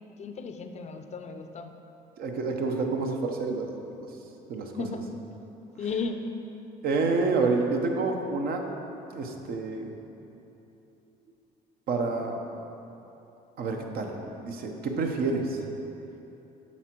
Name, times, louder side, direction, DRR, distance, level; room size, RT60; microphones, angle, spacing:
voice 1, 0.2-1.8 4.7-5.1 5.8-6.3, left 4 dB, 40° left, 7 dB, 0.5 m, -35 dB
voice 2, 2.2-4.1 4.5-4.7 6.8-8.6 9.1-9.9 11.9-12.4 13.6-15.6, right 3 dB, 65° right, 3 dB, 0.9 m, -28 dB
8.5 x 6.1 x 4.5 m, 3.0 s
cardioid pair, 110°, 17 cm